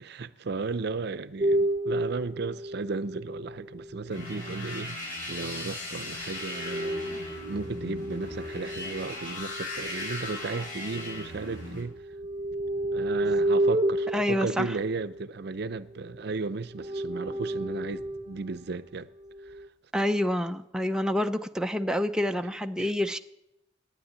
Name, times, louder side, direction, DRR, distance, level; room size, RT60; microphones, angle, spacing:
voice 1, 0.0-11.9 12.9-19.1 19.4-19.7 22.8-22.9, right 3 dB, 60° right, 0.6 m, -35 dB
sound 1, 1.4-4.6 6.3-11.4 11.8-16.2 16.6-18.4 19.2-19.7, right 1 dB, 25° right, 0.9 m, -31 dB
sound 2, 4.1-11.8, left 2 dB, 45° left, 6.6 m, -38 dB
voice 2, 14.1-14.7 19.9-23.2, left 1 dB, 5° right, 0.5 m, -27 dB
11.5 x 9.9 x 9.5 m
head